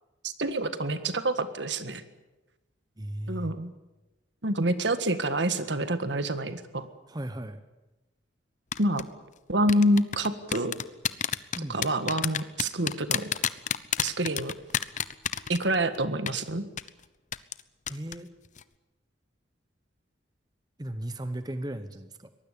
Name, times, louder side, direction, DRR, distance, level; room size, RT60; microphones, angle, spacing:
voice 1, 0.2-2.0 3.3-3.7 4.4-6.9 8.8-9.0 9.5-10.8 11.7-13.3 14.0-14.5 15.5-16.7, right 1 dB, 70° right, 10 dB, 1.7 m, -27 dB
voice 2, 3.0-3.6 7.1-7.6 11.5-11.8 17.9-18.3 20.8-22.3, right 1 dB, 20° right, 10 dB, 1.0 m, -36 dB
sound 1, 8.7-9.0 9.7-16.0 16.3-16.4 16.8-16.9 17.3-17.6 17.9-18.2 18.5-18.6, left 8 dB, 40° left, 0.8 m, -29 dB
23.5 x 19.5 x 8.5 m, 1.0 s
head